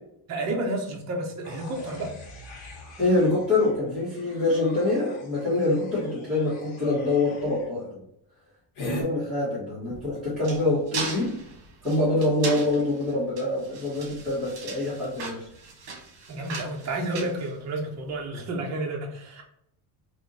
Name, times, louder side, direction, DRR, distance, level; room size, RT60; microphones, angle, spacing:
voice 1, 0.3-2.1 16.3-19.4, right 2 dB, 35° right, 0 dB, 0.7 m, -31 dB
sound 1, 1.4-7.7 8.8-9.0, left 1 dB, 65° left, 1.2 m, -40 dB
voice 2, 3.0-8.0 8.8-11.3 11.8-15.5, left 2 dB, ahead, -12 dB, 1.4 m, -25 dB
sound 2, 9.8-18.1, right 4 dB, 60° right, 1.3 m, -38 dB
3.5 x 2.6 x 4.0 m, 0.76 s
cardioid pair, 170°, 50 cm